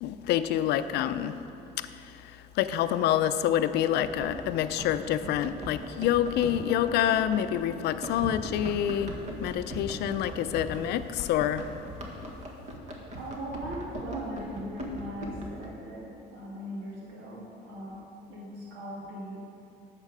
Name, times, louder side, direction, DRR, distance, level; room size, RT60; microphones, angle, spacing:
voice 1, 0.0-1.4 1.8-9.1 9.4-11.7, left 11 dB, 80° left, 11 dB, 0.5 m, -27 dB
Run, 4.0-15.7, equal, 45° right, 1.6 m, -40 dB
voice 2, 13.2-19.4, equal, 90° right, -4 dB, 2.1 m, -39 dB
11.5 x 7.5 x 4.9 m, 2.7 s
cardioid pair, 110°, 17 cm